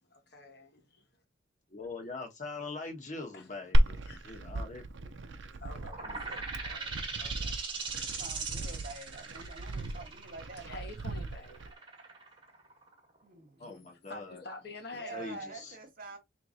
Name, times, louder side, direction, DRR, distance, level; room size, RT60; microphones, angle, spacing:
voice 1, 0.0-1.2 3.3-4.4 5.3-7.6 8.7-8.8 9.4-9.5 10.6-12.2 13.6-15.8, left 2 dB, 55° left, 1.3 m, -49 dB
voice 2, 1.7-4.0 4.2-5.1 6.1-6.2 13.6-14.4 15.1-15.7, left 3 dB, 40° left, 1.4 m, -42 dB
Glass, 3.7-11.7, right 1 dB, 70° right, 0.6 m, -33 dB
voice 3, 5.2-5.6 7.8-10.9 13.2-13.8 14.9-16.2, right 3 dB, 45° right, 1.4 m, -47 dB
sound 1, 5.8-13.2, right 4 dB, 25° right, 1.3 m, -40 dB
4.7 x 3.4 x 2.6 m
head